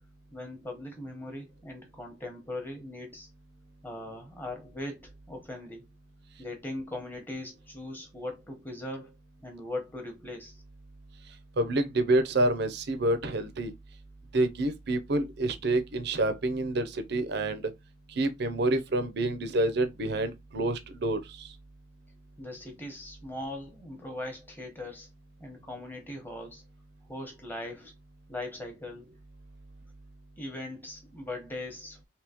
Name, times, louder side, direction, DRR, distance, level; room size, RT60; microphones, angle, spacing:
voice 1, 0.3-3.3 3.8-5.8 6.4-10.6 22.4-25.1 25.4-26.6 27.1-27.9 28.3-29.1 30.4-32.0, left 1 dB, 10° left, 1.0 m, -40 dB
voice 2, 11.6-13.7 14.3-17.7 18.2-21.5, right 2 dB, 55° right, 0.6 m, -28 dB
3.5 x 2.8 x 2.8 m
head